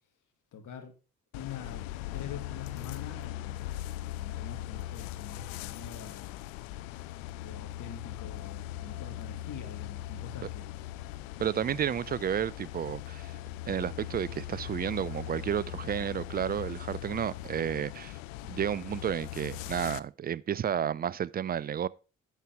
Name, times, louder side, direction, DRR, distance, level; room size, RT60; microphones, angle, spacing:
voice 1, 0.5-0.9 1.3-1.9 2.1-3.8 4.1-6.4 7.4-10.8, left 7 dB, 50° left, 2.3 m, -45 dB
sound 1, 1.3-20.0, left 14 dB, 70° left, 0.5 m, -40 dB
voice 2, 11.4-13.3 13.7-18.2 18.5-21.9, right 9 dB, 25° right, 0.4 m, -31 dB
11.0 x 7.5 x 3.5 m
figure-of-eight pair, 45°, 39 cm